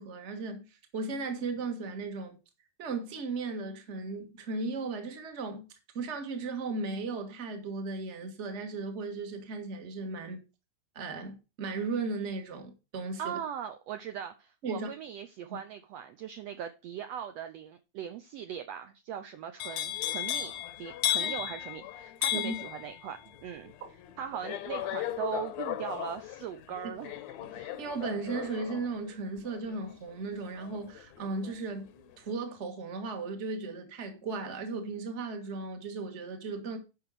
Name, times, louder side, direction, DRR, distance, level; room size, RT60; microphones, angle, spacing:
voice 1, 0.0-2.4 2.8-5.7 5.9-10.4 10.9-13.4 14.6-14.9 15.5-15.6 21.2-21.3 22.3-22.5 23.8-23.9 27.4-31.9 32.2-36.8, right 3 dB, 30° right, 1.3 m, -36 dB
voice 2, 13.2-23.7 24.2-27.1, right 9 dB, 75° right, 1.6 m, -40 dB
sound 1, 19.6-31.6 31.9-32.3, left 12 dB, 70° left, 2.0 m, -36 dB
10.5 x 5.6 x 4.9 m
omnidirectional pair, 3.6 m